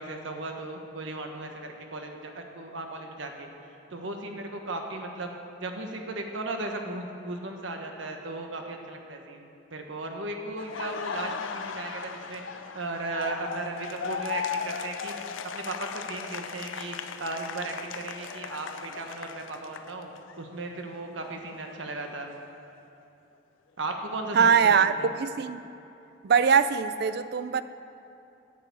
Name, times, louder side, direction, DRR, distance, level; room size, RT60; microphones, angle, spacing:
voice 1, 0.0-3.5 3.9-5.3 5.6-12.4 12.7-15.2 15.5-22.3 23.8-25.1, right 2 dB, 80° right, 3 dB, 1.3 m, -36 dB
Laughter, 10.6-20.4 20.7-22.7, left 6 dB, 80° left, 0.5 m, -37 dB
voice 2, 24.3-25.6 26.2-27.6, right 6 dB, 55° right, 13 dB, 0.4 m, -22 dB
9.8 x 6.8 x 8.4 m, 2.8 s
head